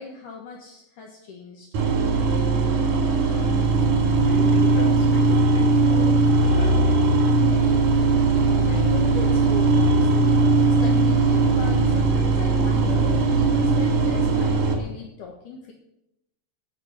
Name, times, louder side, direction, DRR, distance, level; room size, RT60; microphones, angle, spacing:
voice 1, 0.0-1.7 8.7-15.7, left 4 dB, 70° left, 1 dB, 2.8 m, -39 dB
sound 1, 1.7-14.7, right 3 dB, 75° right, 4.2 m, -19 dB
voice 2, 4.2-7.1, left 2 dB, 40° left, -1 dB, 3.6 m, -37 dB
15.0 x 6.9 x 8.2 m, 0.85 s
omnidirectional pair, 4.0 m